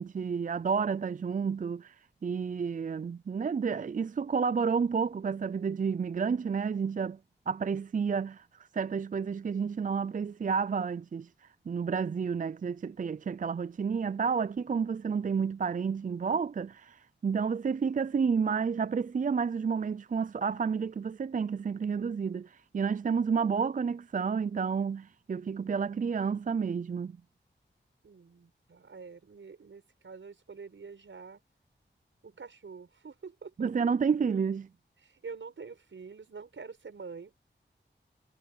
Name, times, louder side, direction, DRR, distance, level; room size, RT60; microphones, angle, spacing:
voice 1, 0.0-1.9 2.2-7.2 7.5-8.4 8.7-11.3 11.7-27.1 33.6-34.7, right 6 dB, 45° right, 0.4 m, -30 dB
voice 2, 28.0-31.4 32.2-33.7 35.0-37.3, right 5 dB, 85° right, 5.9 m, -46 dB
cardioid pair, 45°, 19 cm